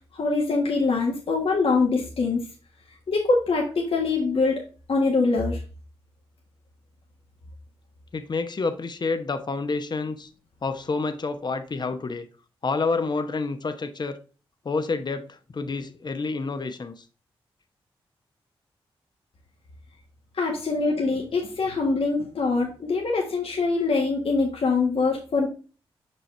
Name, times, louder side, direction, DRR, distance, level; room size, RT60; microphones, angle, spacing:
voice 1, 0.1-2.4 3.1-4.5 4.9-5.6 20.4-25.5, left 3 dB, 65° left, 1.5 m, -23 dB
voice 2, 8.1-10.3 10.6-12.3 12.6-14.2 14.6-17.0, left 4 dB, 45° left, 0.9 m, -28 dB
5.8 x 5.4 x 3.2 m
cardioid pair, 50°, 10 cm